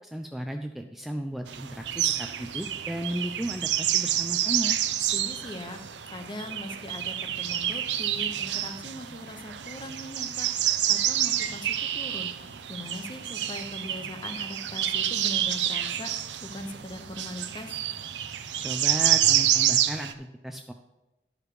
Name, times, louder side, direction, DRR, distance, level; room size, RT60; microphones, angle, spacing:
voice 1, 0.0-4.8 18.6-20.7, equal, ahead, 4 dB, 0.3 m, -35 dB
sound 1, 1.5-20.1, right 11 dB, 85° right, 0.6 m, -28 dB
voice 2, 5.1-5.8 6.1-17.8, left 1 dB, 25° left, 6 dB, 0.8 m, -40 dB
11.0 x 4.9 x 4.8 m, 1.0 s
head